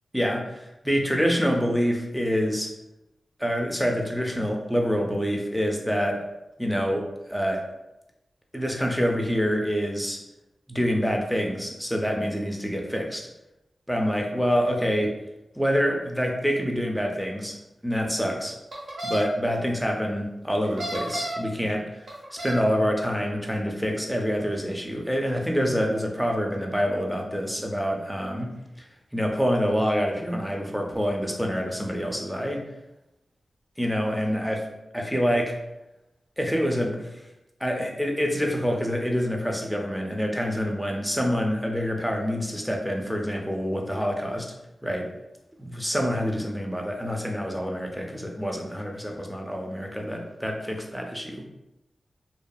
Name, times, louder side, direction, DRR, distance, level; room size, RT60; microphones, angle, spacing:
voice 1, 0.1-2.7 3.4-6.2 6.6-7.6 8.5-10.2 10.7-13.3 13.9-15.1 15.6-17.6 17.8-18.6 19.0-21.9 22.3-28.5 29.1-32.6 33.8-34.6 34.9-35.5 36.4-37.1 37.6-44.5 44.8-45.1 45.6-51.5, equal, ahead, 1 dB, 0.5 m, -26 dB
sound 1, 18.7-19.2 20.6-21.5 22.1-22.6, right 1 dB, 80° right, 0.7 m, -32 dB
2.6 x 2.3 x 2.2 m, 0.93 s
cardioid pair, 55°, 0 cm